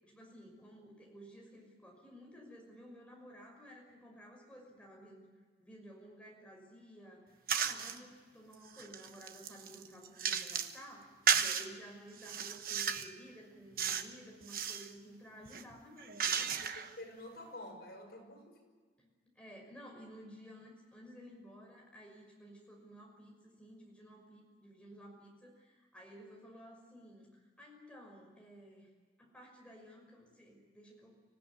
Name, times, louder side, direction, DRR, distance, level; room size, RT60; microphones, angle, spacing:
voice 1, 0.0-5.3 5.6-11.1 11.4-16.5 19.0-28.9 29.2-31.1, equal, 5° left, -1 dB, 5.9 m, -54 dB
sound 1, 7.5-8.0 8.5-10.8 11.3-11.7 12.2-13.1 13.8-14.1 14.4-14.9 15.5-16.9, right 7 dB, 50° right, 1.2 m, -34 dB
voice 2, 11.4-11.8 16.6-18.6, left 1 dB, 60° left, 1 dB, 6.5 m, -50 dB
25.5 x 16.5 x 9.7 m, 1.5 s
head